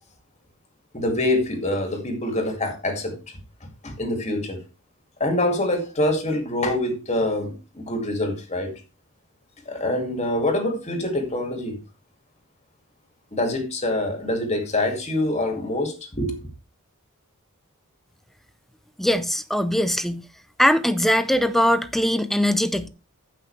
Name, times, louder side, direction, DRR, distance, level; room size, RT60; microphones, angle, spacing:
voice 1, 0.9-3.1 3.8-4.6 5.2-8.7 9.7-11.7 13.3-16.3, left 1 dB, 30° left, 2.4 m, -25 dB
voice 2, 19.0-20.2 20.6-22.9, equal, ahead, 0.6 m, -21 dB
14.5 x 5.9 x 3.3 m
head